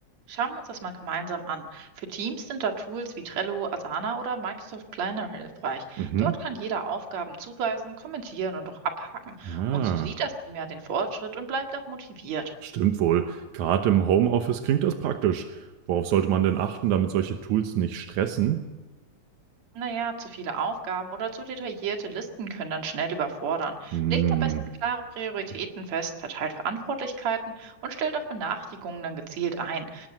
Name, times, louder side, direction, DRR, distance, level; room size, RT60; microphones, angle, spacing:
voice 1, 0.3-12.5 19.7-24.5 24.8-30.1, right 5 dB, 65° right, 4 dB, 3.2 m, -32 dB
voice 2, 6.0-6.4 9.4-10.1 12.6-18.6 23.9-24.6, right 10 dB, 85° right, 6 dB, 2.5 m, -25 dB
24.5 x 19.5 x 7.8 m, 1.1 s
omnidirectional pair, 3.3 m